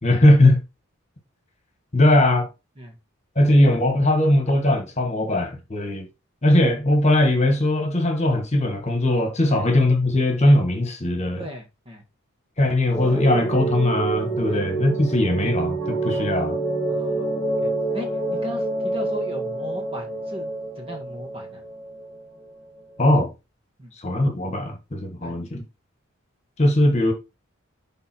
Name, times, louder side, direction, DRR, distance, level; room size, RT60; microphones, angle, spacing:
voice 1, 0.0-0.6 1.9-2.5 3.3-6.1 6.4-11.4 12.6-16.5 23.0-23.3 24.0-25.6 26.6-27.1, left 1 dB, 30° left, 1.7 m, -19 dB
voice 2, 11.4-12.0 14.5-14.7 15.1-15.2 16.1-16.4 16.9-17.3 17.6-21.6 23.8-23.9 25.2-25.4, equal, 25° right, 1.8 m, -38 dB
sound 1, 12.9-23.0, right 3 dB, 5° left, 5.3 m, -27 dB
11.0 x 3.8 x 4.5 m
head